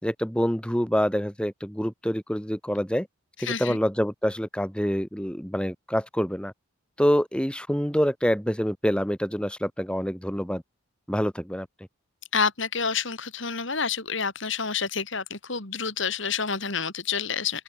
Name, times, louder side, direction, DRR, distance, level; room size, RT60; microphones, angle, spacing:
voice 1, 0.0-3.1 3.4-6.5 7.0-10.6 11.1-11.7, equal, 5° left, 4.0 m, -26 dB
voice 2, 3.5-3.8 12.3-17.6, left 5 dB, 60° left, 3.4 m, -28 dB
open air
head